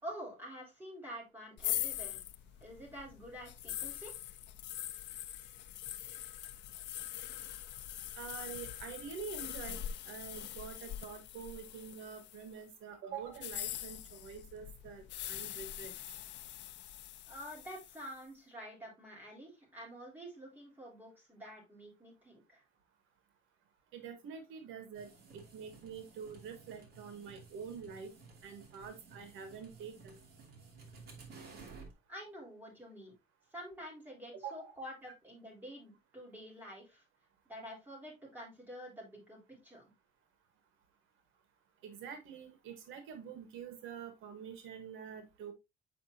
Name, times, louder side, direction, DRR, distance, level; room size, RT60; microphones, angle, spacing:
voice 1, 0.0-2.2 2.6-4.1 17.3-22.6 32.1-33.1 33.5-37.0 37.5-39.9, equal, 10° right, -3 dB, 3.6 m, -48 dB
sound 1, 1.6-12.5 13.3-18.1, left 12 dB, 60° left, 0.6 m, -43 dB
voice 2, 8.1-15.9 23.9-28.1 28.4-30.2 34.4-34.8 41.8-45.5, right 7 dB, 80° right, 8 dB, 1.3 m, -46 dB
sound 2, 24.9-31.9, right 4 dB, 50° right, 2.2 m, -55 dB
7.7 x 5.0 x 2.7 m, 0.23 s
cardioid pair, 145°, 20 cm